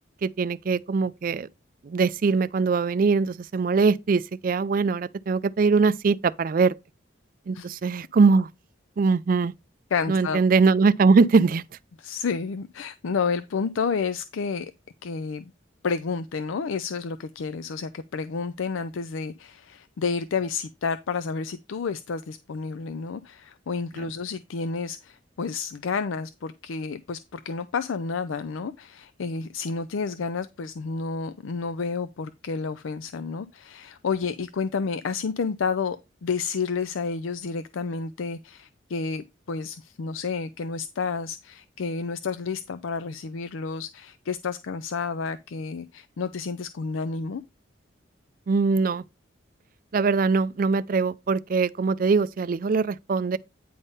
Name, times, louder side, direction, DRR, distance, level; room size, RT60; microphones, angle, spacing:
voice 1, 0.2-1.5 1.8-6.7 7.5-8.5 9.0-9.5 10.1-11.6 24.0-24.1 48.5-49.0 49.9-53.4, right 4 dB, 45° right, 0.4 m, -22 dB
voice 2, 9.9-10.4 12.0-14.7 15.0-15.5 15.8-36.0 36.2-47.4, left 5 dB, 85° left, 0.5 m, -30 dB
9.4 x 3.6 x 5.4 m
head